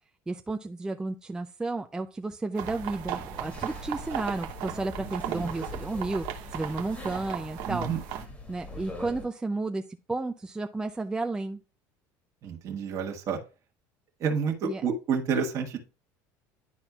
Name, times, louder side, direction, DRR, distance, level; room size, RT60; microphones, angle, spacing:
voice 1, 0.3-7.9 8.5-11.6 14.6-14.8, right 3 dB, 10° right, 5 dB, 0.4 m, -32 dB
sound 1, 2.6-9.3, left 2 dB, 25° left, 1.9 m, -43 dB
sound 2, 2.6-8.3, right 11 dB, 70° right, 0.9 m, -37 dB
voice 2, 5.0-5.5 7.6-8.0 12.4-13.4 14.2-15.8, right 6 dB, 45° right, 1 dB, 1.3 m, -29 dB
10.5 x 4.3 x 2.3 m, 0.32 s
cardioid pair, 130°, 7 cm